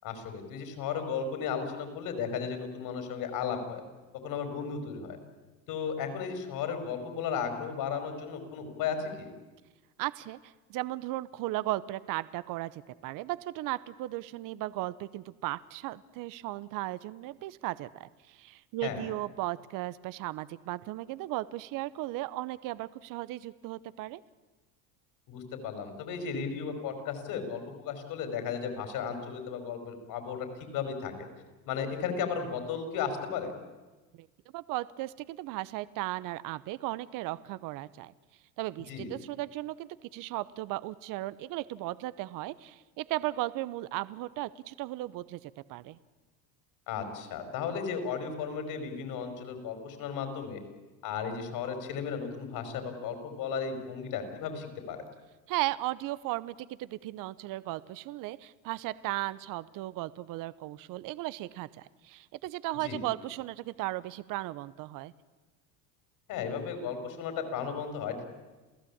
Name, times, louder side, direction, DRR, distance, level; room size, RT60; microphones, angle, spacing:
voice 1, 0.0-3.8 4.2-5.2 5.7-9.3 18.8-19.0 25.3-31.3 31.7-33.5 38.9-39.1 46.9-50.6 51.0-55.0 62.8-63.0 66.3-68.2, left 6 dB, 60° left, 7 dB, 5.4 m, -35 dB
voice 2, 10.0-24.2 34.2-34.3 34.5-38.1 38.6-46.0 55.5-65.1, right 17 dB, 55° right, 18 dB, 0.9 m, -36 dB
28.0 x 16.0 x 8.7 m, 1.2 s
supercardioid pair, 115°, 39 cm